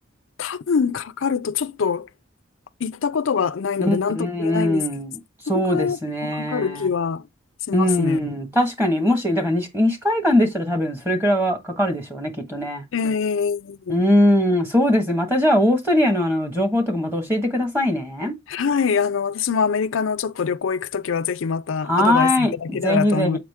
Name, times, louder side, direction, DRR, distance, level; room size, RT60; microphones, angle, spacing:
voice 1, 0.4-2.1 2.8-4.8 5.5-7.2 7.7-8.2 12.9-14.0 18.5-23.4, left 6 dB, 75° left, 0.5 m, -24 dB
voice 2, 3.8-5.2 5.5-6.9 7.7-12.8 13.9-18.3 21.8-23.4, left 1 dB, 10° right, 1.5 m, -21 dB
7.4 x 5.0 x 3.6 m
head